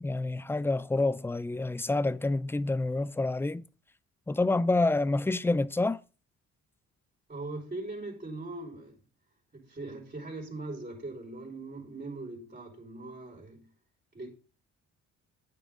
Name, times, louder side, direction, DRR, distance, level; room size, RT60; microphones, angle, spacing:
voice 1, 0.0-3.6 4.3-6.0, left 2 dB, 10° left, 0.4 m, -28 dB
voice 2, 7.3-9.0 9.5-13.7 14.1-14.3, right 2 dB, 30° right, 4.8 m, -40 dB
10.5 x 9.3 x 3.8 m
cardioid pair, 90°, 30 cm